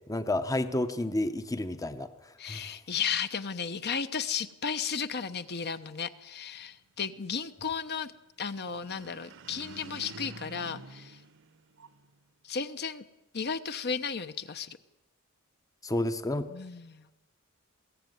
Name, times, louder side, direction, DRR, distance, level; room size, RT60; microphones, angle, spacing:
voice 1, 0.1-2.8 15.8-16.5, left 1 dB, 15° left, 10 dB, 0.8 m, -31 dB
voice 2, 2.4-8.1 8.4-11.2 12.4-13.0 13.3-14.8 16.5-17.1, left 6 dB, 50° left, 10 dB, 1.0 m, -34 dB
sound 1, 8.6-12.2, right 3 dB, 60° right, 1.1 m, -48 dB
22.0 x 16.5 x 9.4 m, 1.0 s
head